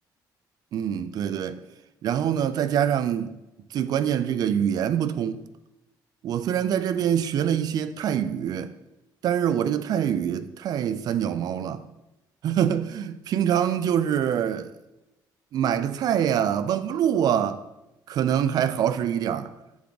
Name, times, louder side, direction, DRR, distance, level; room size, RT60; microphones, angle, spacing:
voice 1, 0.7-1.6 2.0-3.4 3.7-5.4 6.2-8.7 9.2-11.8 12.4-14.7 15.5-17.6 18.1-19.5, right 9 dB, 55° right, 0.4 m, -25 dB
8.4 x 3.5 x 3.8 m
cardioid pair, 155°, 8 cm